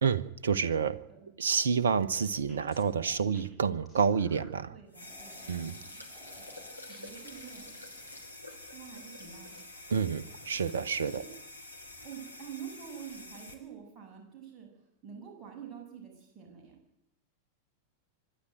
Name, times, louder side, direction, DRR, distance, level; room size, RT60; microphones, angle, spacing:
voice 1, 0.0-1.0 1.4-4.8 5.5-5.8 9.9-11.2, right 6 dB, 65° right, 15 dB, 1.0 m, -29 dB
sound 1, 1.7-4.6 5.1-5.7 6.1-10.4 10.7-11.3 11.7-12.1, left 1 dB, ahead, 4.7 m, -59 dB
voice 2, 4.7-6.0 6.4-6.5 6.9-7.7 8.4-9.6 11.1-11.3 12.0-14.7 15.0-16.8, right 8 dB, 25° right, 0 dB, 7.9 m, -47 dB
sound 2, 4.9-13.6, left 2 dB, 90° left, 2.9 m, -47 dB
25.5 x 11.5 x 9.2 m, 0.80 s
figure-of-eight pair, 90°, 0 cm